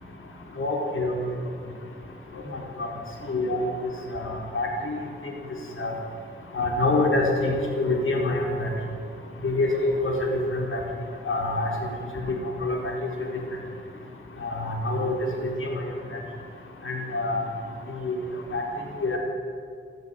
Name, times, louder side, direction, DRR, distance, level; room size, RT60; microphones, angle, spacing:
voice 1, 0.6-1.1 2.5-2.9 3.3-3.7 4.1-5.0 5.8-5.9 6.5-8.7 9.4-10.1 10.5-10.8 11.3-11.7 12.3-12.4 12.6-12.8 14.4-15.8 16.8-17.4 18.0-18.2 18.5-18.6 19.0-19.2, left 2 dB, 80° left, 0 dB, 4.6 m, -26 dB
27.5 x 14.5 x 9.8 m, 2.4 s
wide cardioid pair, 155°, 21 cm